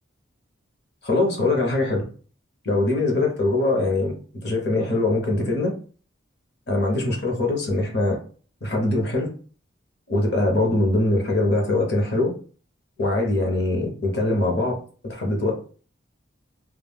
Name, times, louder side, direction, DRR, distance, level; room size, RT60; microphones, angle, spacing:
voice 1, 1.0-2.0 2.6-5.7 6.7-8.2 8.6-9.3 10.1-12.3 13.0-14.8 15.0-15.5, left 2 dB, 55° left, 0 dB, 0.9 m, -22 dB
2.3 x 2.2 x 3.4 m, 0.41 s
head